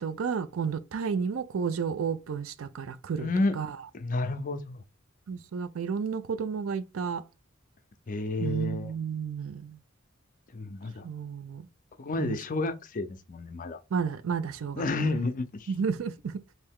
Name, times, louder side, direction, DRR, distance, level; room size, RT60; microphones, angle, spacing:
voice 1, 0.0-3.3 3.6-3.8 5.3-7.2 8.4-9.8 11.0-11.7 12.2-12.4 13.9-14.9 15.7-16.4, right 6 dB, 70° right, 0.4 m, -31 dB
voice 2, 3.2-3.6 3.9-4.8 8.1-8.9 10.5-11.1 12.0-13.8 14.8-15.7, left 2 dB, 40° left, 0.5 m, -30 dB
3.2 x 2.7 x 3.5 m
head